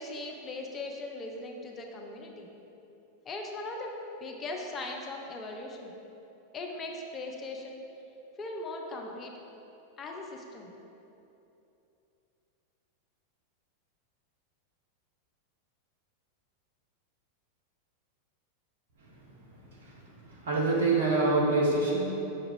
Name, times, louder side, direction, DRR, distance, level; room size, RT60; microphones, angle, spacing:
voice 1, 0.0-2.5 3.3-5.9 6.5-7.8 8.4-9.3 10.0-10.7, left 2 dB, 25° left, 1 dB, 0.4 m, -39 dB
voice 2, 19.0-22.0, right 3 dB, 60° right, -3 dB, 0.8 m, -27 dB
5.9 x 2.4 x 3.1 m, 2.9 s
figure-of-eight pair, 90°, 0 cm